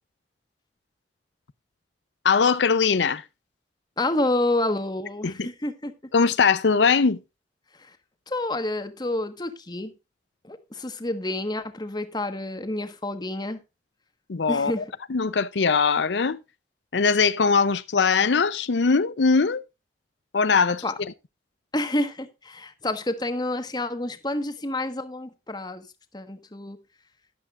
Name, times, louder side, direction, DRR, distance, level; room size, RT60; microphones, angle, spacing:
voice 1, 2.2-3.2 5.2-5.5 6.1-7.2 14.3-14.7 15.1-16.4 16.9-19.6 20.3-20.8, left 5 dB, 85° left, 0.6 m, -21 dB
voice 2, 4.0-5.9 7.7-8.0 8.3-9.9 10.4-13.6 14.5-14.9 20.8-20.9 21.7-25.9 26.1-26.8, left 1 dB, 25° left, 1.3 m, -29 dB
13.0 x 11.5 x 2.4 m
head